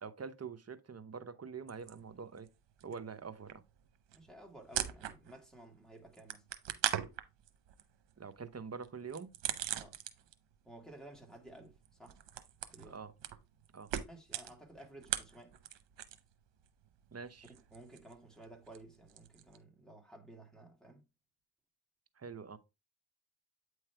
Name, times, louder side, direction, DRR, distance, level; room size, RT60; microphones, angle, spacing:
voice 1, 0.0-2.5 2.8-3.6 8.2-9.3 12.9-13.1 13.7-13.9 17.1-17.5 22.2-22.6, right 5 dB, 35° right, 0.9 m, -45 dB
sound 1, 1.7-2.5 2.8-5.5 5.8-10.5 10.8-16.3 16.6-19.6, right 11 dB, 85° right, 0.9 m, -41 dB
voice 2, 4.1-6.5 9.7-10.0 10.6-12.2 12.7-13.0 14.1-15.6 17.5-21.0, right 1 dB, ahead, 2.1 m, -54 dB
8.6 x 3.2 x 4.5 m
cardioid pair, 60°, 42 cm